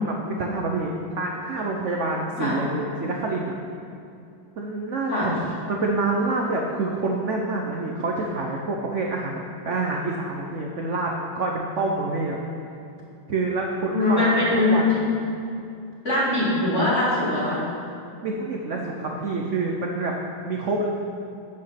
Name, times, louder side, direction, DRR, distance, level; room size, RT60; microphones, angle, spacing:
voice 1, 0.0-3.5 4.6-5.4 5.7-12.4 13.3-14.3 14.7-15.1 18.2-20.1 20.5-20.9, right 3 dB, 65° right, 0 dB, 0.7 m, -27 dB
voice 2, 13.9-15.0 16.0-17.6, left 2 dB, 35° left, -8 dB, 3.0 m, -22 dB
8.6 x 7.4 x 5.8 m, 2.6 s
omnidirectional pair, 2.3 m